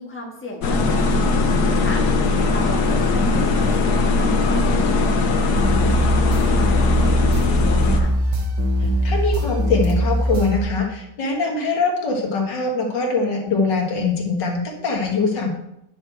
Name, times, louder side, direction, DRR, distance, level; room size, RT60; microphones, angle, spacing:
voice 1, 0.0-2.0 2.5-6.1 6.6-8.1, left 1 dB, 5° left, -1 dB, 1.4 m, -35 dB
sound 1, 0.6-8.0, left 3 dB, 70° left, 1.5 m, -19 dB
sound 2, 5.6-10.6, equal, 70° right, 1.9 m, -21 dB
voice 2, 8.8-15.5, left 3 dB, 90° left, 0 dB, 2.3 m, -23 dB
9.6 x 6.3 x 4.5 m, 0.82 s
omnidirectional pair, 1.9 m